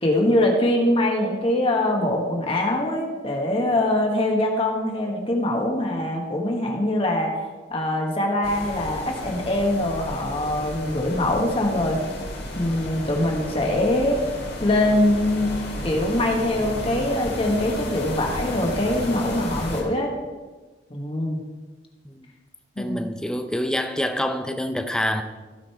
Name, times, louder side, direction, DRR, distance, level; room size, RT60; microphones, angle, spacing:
voice 1, 0.0-7.3 7.7-12.0 12.5-14.2 14.6-15.5 15.8-20.1 20.9-21.4 22.8-23.0, left 1 dB, 30° left, 1 dB, 1.3 m, -23 dB
sound 1, 8.4-19.8, left 1 dB, 65° left, 2.3 m, -33 dB
voice 2, 22.8-25.2, equal, 5° left, 7 dB, 0.6 m, -26 dB
15.5 x 5.2 x 4.4 m, 1.3 s
head